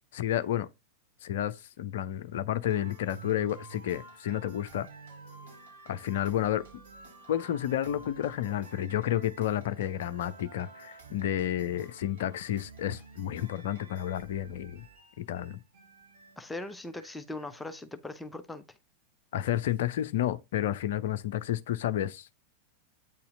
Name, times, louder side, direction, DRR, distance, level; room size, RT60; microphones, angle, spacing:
voice 1, 0.1-0.7 1.2-4.9 5.9-6.7 7.3-14.8 15.2-15.6 19.3-22.3, left 11 dB, 55° left, 0.6 m, -31 dB
sound 1, 2.7-17.8, right 3 dB, 60° right, 3.8 m, -51 dB
voice 2, 16.4-18.6, left 2 dB, 5° left, 0.7 m, -40 dB
8.9 x 4.2 x 3.7 m
figure-of-eight pair, 90°, 0 cm